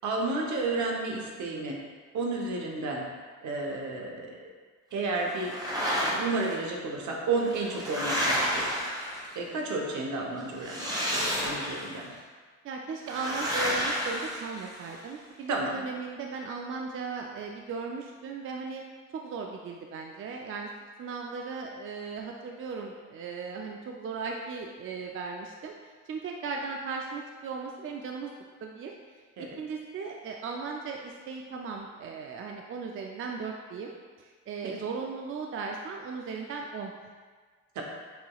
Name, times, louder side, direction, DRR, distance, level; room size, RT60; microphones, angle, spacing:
voice 1, 0.0-1.8 2.1-3.1 3.4-4.5 4.9-5.5 6.1-8.8 9.3-12.1 15.5-15.8 29.4-29.5 34.6-34.7 37.7-37.8, right 3 dB, 70° right, 0 dB, 0.9 m, -32 dB
sound 1, 5.3-6.5 7.3-9.5 10.6-12.0 13.1-15.0, equal, 15° right, 1.4 m, -31 dB
voice 2, 12.6-18.8 19.1-20.7 21.0-28.3 28.6-36.9, right 4 dB, 45° right, 1 dB, 0.4 m, -37 dB
7.0 x 2.9 x 2.3 m, 1.5 s
cardioid pair, 90°, 30 cm